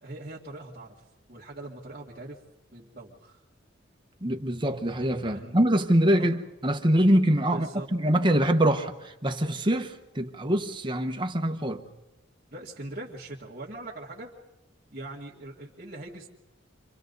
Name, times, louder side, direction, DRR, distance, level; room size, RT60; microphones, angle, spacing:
voice 1, 0.0-1.0 1.3-2.4 2.7-3.4 5.2-5.6 6.2-6.3 7.5-7.9 12.5-14.3 14.9-16.3, right 2 dB, 40° right, -8 dB, 2.1 m, -41 dB
voice 2, 4.2-11.8, right 1 dB, 25° right, 4 dB, 1.2 m, -24 dB
29.0 x 24.5 x 4.0 m, 0.99 s
head